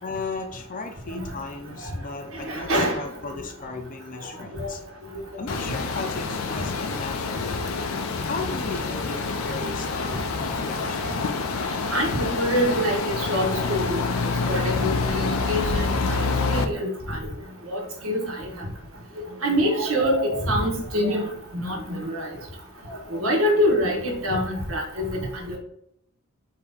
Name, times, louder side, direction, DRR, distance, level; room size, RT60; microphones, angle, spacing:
voice 1, 0.0-4.8 5.4-7.7 8.2-11.1 17.1-17.2, left 3 dB, 40° left, 6 dB, 0.6 m, -36 dB
voice 2, 2.5-3.0 4.6-4.7 11.9-14.0 14.5-16.2 16.5-17.2 17.7-18.7 19.4-21.3 21.5-22.3 22.9-25.6, equal, 75° right, -1 dB, 1.3 m, -25 dB
sound 1, 5.5-16.6, left 4 dB, 90° left, 0.5 m, -27 dB
4.7 x 2.9 x 3.5 m, 0.73 s
head